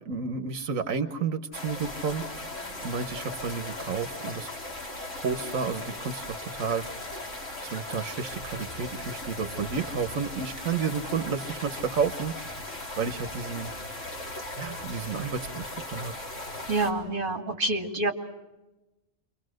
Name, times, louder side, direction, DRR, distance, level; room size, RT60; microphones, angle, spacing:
voice 1, 0.0-2.2 2.8-4.5 5.2-6.8 7.6-12.3 13.0-13.7 14.6-16.1, right 5 dB, 85° right, 9 dB, 1.5 m, -31 dB
sound 1, 1.5-16.9, left 2 dB, 70° left, 4.2 m, -38 dB
voice 2, 16.7-18.1, right 2 dB, 40° right, 4 dB, 2.5 m, -27 dB
28.5 x 24.0 x 6.4 m, 1.0 s
omnidirectional pair, 1.4 m